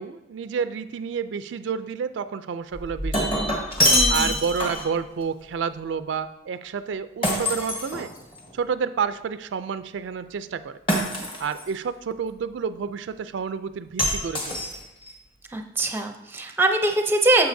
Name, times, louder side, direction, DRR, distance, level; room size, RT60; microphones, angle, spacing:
voice 1, 0.0-3.4 4.1-8.1 8.5-10.8 11.4-14.6, right 6 dB, 65° right, 12 dB, 0.3 m, -30 dB
Shatter, 2.7-5.0 7.2-8.5 10.9-11.7 14.0-15.1, left 1 dB, 25° left, 1.2 m, -24 dB
voice 2, 3.9-4.4 15.5-17.5, right 2 dB, 10° right, 4 dB, 0.6 m, -23 dB
9.4 x 6.9 x 2.7 m, 0.95 s
head